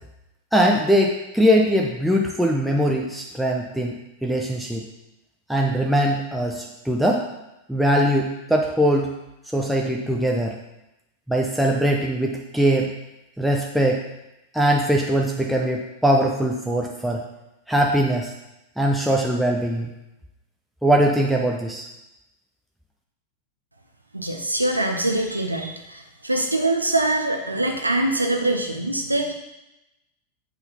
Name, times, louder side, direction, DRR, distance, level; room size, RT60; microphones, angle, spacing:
voice 1, 0.5-4.0 4.2-4.8 5.5-7.3 7.7-9.1 9.5-10.5 11.3-12.9 13.4-14.0 14.5-17.2 17.7-18.3 18.8-19.9 20.8-21.8, equal, ahead, -1 dB, 0.7 m, -21 dB
voice 2, 24.1-29.3, right 2 dB, 85° right, 3 dB, 0.7 m, -23 dB
8.0 x 4.2 x 5.5 m, 0.93 s
figure-of-eight pair, 90°, 0 cm